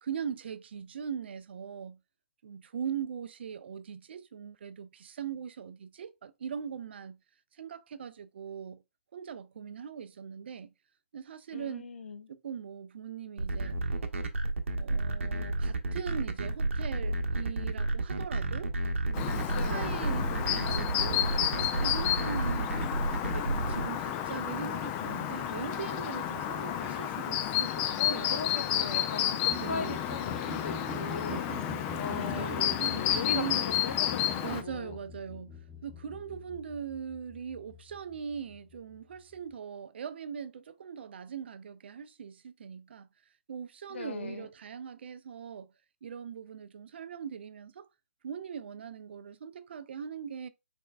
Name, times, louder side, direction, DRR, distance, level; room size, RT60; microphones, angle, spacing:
voice 1, 0.0-2.0 2.4-7.2 7.5-8.8 9.1-10.7 11.1-11.9 12.3-13.8 14.7-18.7 19.1-22.7 23.3-28.6 29.6-30.1 32.1-33.6 34.4-43.1 43.5-45.7 46.0-47.9 48.2-50.5, right 7 dB, 55° right, 0.4 m, -40 dB
voice 2, 11.5-12.3 19.5-19.9 28.0-31.7 32.0-35.0 43.9-44.5, left 5 dB, 65° left, 0.6 m, -39 dB
sound 1, 13.4-23.8, right 2 dB, 70° right, 0.8 m, -31 dB
Chirp tweet, 19.1-34.6, left 11 dB, 20° left, 0.3 m, -31 dB
sound 2, 29.5-39.5, left 1 dB, 5° right, 0.7 m, -45 dB
4.3 x 3.1 x 2.4 m
hypercardioid pair, 140°, 7 cm